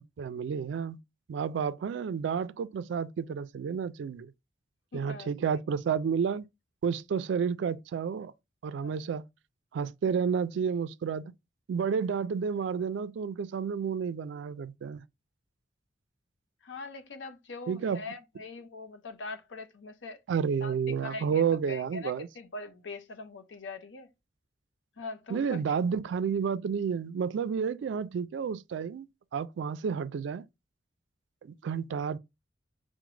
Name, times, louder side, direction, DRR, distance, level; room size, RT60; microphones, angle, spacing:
voice 1, 0.2-1.0 1.3-4.3 4.9-6.5 6.8-8.3 8.6-9.2 9.7-11.3 11.7-15.0 17.7-18.0 20.3-22.3 25.3-29.1 29.3-30.4 31.4-32.2, right 6 dB, 70° right, 0.3 m, -30 dB
voice 2, 4.9-5.6 8.8-9.1 16.6-20.2 20.6-24.1 24.9-25.8, left 3 dB, 75° left, 0.7 m, -42 dB
5.9 x 2.1 x 3.1 m
head